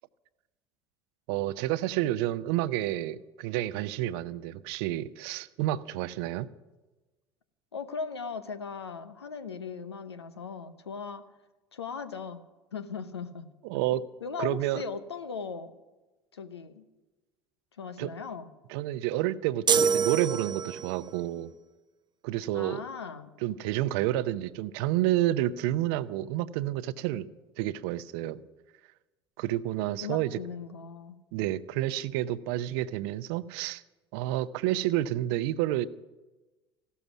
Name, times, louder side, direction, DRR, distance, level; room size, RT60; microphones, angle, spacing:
voice 1, 1.3-6.5 13.6-14.0 14.4-14.8 18.0-18.1 18.7-21.5 22.2-22.8 23.4-27.3 27.6-28.4 29.4-30.4 31.3-33.8 34.1-35.9, right 14 dB, 65° right, 16 dB, 0.6 m, -29 dB
voice 2, 7.7-11.2 11.7-12.4 12.7-13.5 14.2-15.7 16.3-16.9 17.8-18.5 22.5-23.3 30.0-31.2, left 5 dB, 90° left, 11 dB, 0.8 m, -38 dB
sound 1, 19.7-21.0, right 6 dB, 35° right, 0.7 m, -25 dB
15.0 x 12.5 x 6.1 m, 1.2 s
hypercardioid pair, 65°, 13 cm